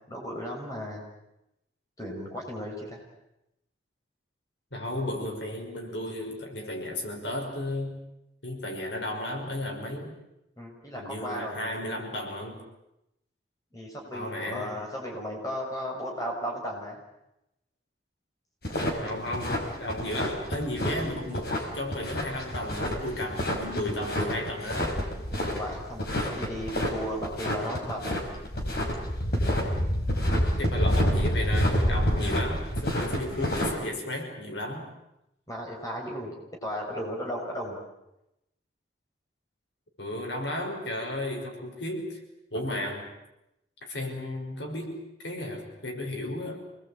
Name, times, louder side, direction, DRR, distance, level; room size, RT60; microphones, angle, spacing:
voice 1, 0.1-1.0 2.0-3.0 10.6-11.8 13.7-17.0 25.5-28.2 35.5-36.3 36.6-37.8, equal, 20° left, -1 dB, 6.4 m, -35 dB
voice 2, 4.7-8.0 8.4-10.2 10.9-12.7 14.1-14.8 19.0-25.0 30.6-34.9 36.9-37.1 40.0-42.2 42.5-43.1 43.8-46.6, left 1 dB, 75° left, 1 dB, 6.0 m, -34 dB
sound 1, 18.6-33.7, equal, 55° left, 5.6 m, -28 dB
27.5 x 20.5 x 8.8 m, 0.89 s
head